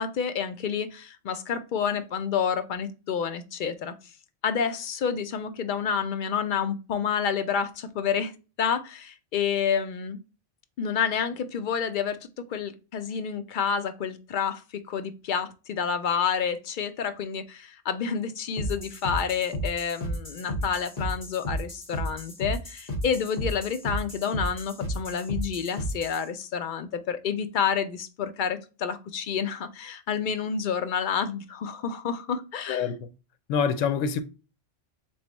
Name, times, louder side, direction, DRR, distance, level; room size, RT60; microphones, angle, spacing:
voice 1, 0.0-3.9 4.4-10.2 10.8-32.9, left 7 dB, 60° left, 0.5 m, -29 dB
sound 1, 18.6-26.2, equal, 35° left, 1.4 m, -33 dB
voice 2, 33.5-34.2, left 6 dB, 85° left, 0.9 m, -25 dB
3.4 x 3.2 x 3.9 m
omnidirectional pair, 1.3 m